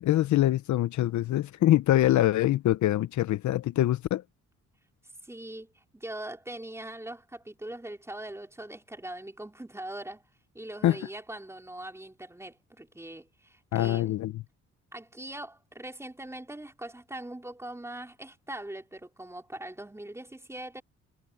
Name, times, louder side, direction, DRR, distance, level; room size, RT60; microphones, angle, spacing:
voice 1, 0.0-4.2 10.8-11.0 13.7-14.4, left 14 dB, 70° left, 0.8 m, -24 dB
voice 2, 5.2-10.2 10.5-14.2 14.9-20.8, right 1 dB, 10° right, 4.5 m, -41 dB
cardioid pair, 90°, 30 cm